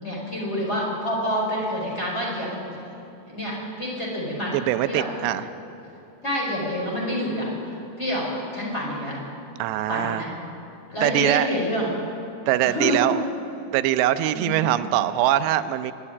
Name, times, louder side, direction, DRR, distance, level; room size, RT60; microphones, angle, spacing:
voice 1, 0.0-2.8 3.3-5.0 5.3-5.4 6.2-9.2 9.9-10.3 10.9-11.9 12.6-13.0 14.3-14.7, equal, 15° left, -4 dB, 4.6 m, -28 dB
voice 2, 4.5-5.5 9.6-10.2 11.0-11.5 12.5-13.2 13.7-15.9, right 13 dB, 90° right, 11 dB, 2.9 m, -22 dB
25.0 x 11.0 x 9.8 m, 2.9 s
omnidirectional pair, 4.9 m